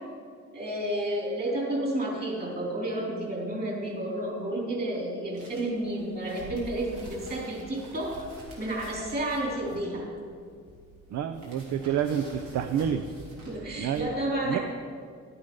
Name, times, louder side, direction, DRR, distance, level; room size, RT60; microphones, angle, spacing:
voice 1, 0.5-8.2 8.6-10.0 13.5-14.6, right 1 dB, 30° right, -2 dB, 3.6 m, -31 dB
sound 1, 5.3-14.0, right 1 dB, 90° right, 3.3 m, -47 dB
voice 2, 11.1-13.0 13.8-14.1 14.5-14.6, right 8 dB, 65° right, 8 dB, 0.6 m, -28 dB
12.0 x 8.6 x 5.5 m, 2.2 s
cardioid pair, 90°, 30 cm